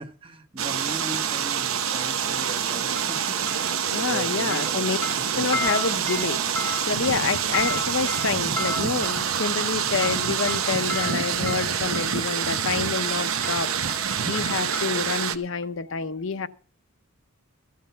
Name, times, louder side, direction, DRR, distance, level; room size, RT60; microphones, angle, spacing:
voice 1, 0.0-5.6, right 2 dB, 25° right, 1.0 m, -39 dB
sound 1, 0.6-15.4, right 8 dB, 70° right, 0.8 m, -26 dB
sound 2, 1.0-1.2 3.0-4.2 4.5-12.2 13.0-13.2 13.4-15.3 15.6-15.7, left 3 dB, 10° left, 0.5 m, -35 dB
voice 2, 3.9-5.0 5.3-16.5, left 5 dB, 60° left, 0.6 m, -28 dB
14.0 x 7.6 x 5.6 m
head